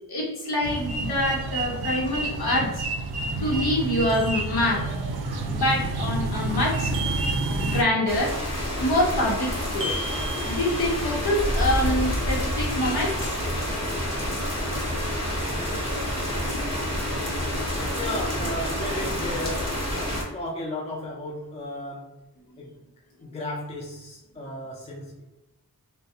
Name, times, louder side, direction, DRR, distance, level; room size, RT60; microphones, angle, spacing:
voice 1, 0.1-2.8 3.4-4.9 5.4-6.9 7.6-8.4 8.8-10.0 10.4-13.3 14.3-14.4, left 1 dB, 80° left, -3 dB, 0.9 m, -26 dB
sound 1, 0.6-7.8, right 2 dB, 90° right, 0.5 m, -29 dB
sound 2, 4.1-5.1 6.9-8.2 9.8-11.3, right 2 dB, 35° right, 0.5 m, -36 dB
sound 3, 8.1-20.2, equal, 45° left, 0.9 m, -28 dB
voice 2, 17.9-19.8 20.3-22.2 22.6-22.8 23.2-25.2, left 1 dB, 20° left, -3 dB, 0.5 m, -34 dB
2.4 x 2.2 x 2.7 m, 0.97 s
wide cardioid pair, 105°, 37 cm